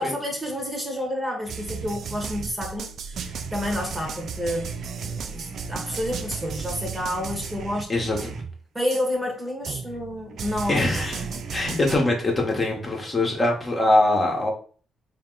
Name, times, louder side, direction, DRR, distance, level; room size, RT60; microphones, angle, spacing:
voice 1, 0.0-4.7 5.0-8.0 8.7-10.8 11.2-11.4, left 1 dB, 10° right, 1 dB, 1.2 m, -30 dB
sound 1, 1.5-8.6 8.9-9.0 9.6-12.0, right 6 dB, 60° right, 0.4 m, -34 dB
voice 2, 7.9-8.4 10.7-11.2 11.5-14.5, left 2 dB, 30° left, 0 dB, 1.2 m, -23 dB
3.6 x 2.8 x 3.9 m, 0.41 s
cardioid pair, 90°, 0 cm